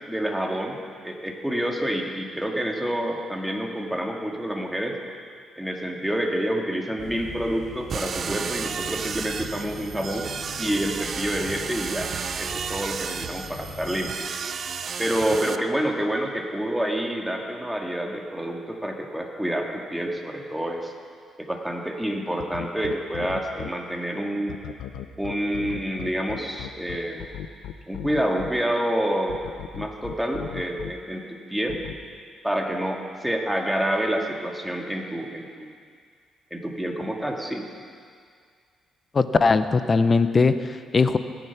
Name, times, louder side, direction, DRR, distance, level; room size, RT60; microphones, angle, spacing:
voice 1, 0.1-5.0 5.6-10.3 10.6-12.1 12.4-14.4 15.0-20.9 21.4-24.6 25.2-27.3 27.9-29.4 29.7-31.8 32.4-35.7 36.5-37.7, right 1 dB, 5° right, 1 dB, 1.9 m, -28 dB
sound 1, 7.0-14.0, left 2 dB, 60° left, 3.9 m, -42 dB
sound 2, 7.9-15.6, right 6 dB, 50° right, 0.6 m, -32 dB
sound 3, 22.4-23.7 24.5-28.5 29.3-30.9 31.7-31.9, left 11 dB, 85° left, 0.8 m, -36 dB
voice 2, 39.1-41.2, left 4 dB, 35° left, 11 dB, 0.8 m, -20 dB
17.5 x 10.5 x 5.9 m, 2.1 s
cardioid pair, 90°, 0 cm